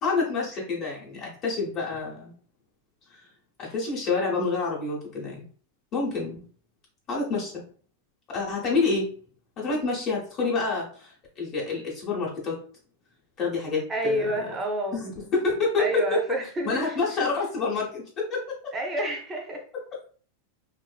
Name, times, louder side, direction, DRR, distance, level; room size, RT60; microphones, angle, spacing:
voice 1, 0.0-2.3 3.1-3.2 3.6-5.4 5.9-6.4 7.1-7.6 8.3-9.2 9.6-12.6 13.4-14.2 14.9-16.2 16.6-18.7, left 4 dB, 35° left, -3 dB, 0.9 m, -28 dB
voice 2, 13.9-15.0 15.8-17.3 18.7-19.6, right 1 dB, 15° right, 2 dB, 0.6 m, -29 dB
2.5 x 2.5 x 2.2 m, 0.43 s
supercardioid pair, 145°, 0 cm